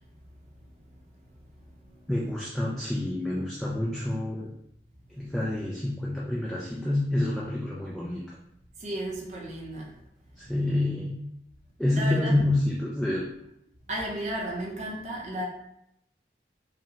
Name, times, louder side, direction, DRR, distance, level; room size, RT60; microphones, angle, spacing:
voice 1, 2.1-4.5 5.1-8.2 10.4-11.1 11.8-13.3, left 1 dB, 5° left, -5 dB, 0.4 m, -28 dB
voice 2, 8.8-9.9 11.9-12.4 13.9-15.4, right 1 dB, 40° right, -3 dB, 0.8 m, -33 dB
4.9 x 2.2 x 2.9 m, 0.79 s
head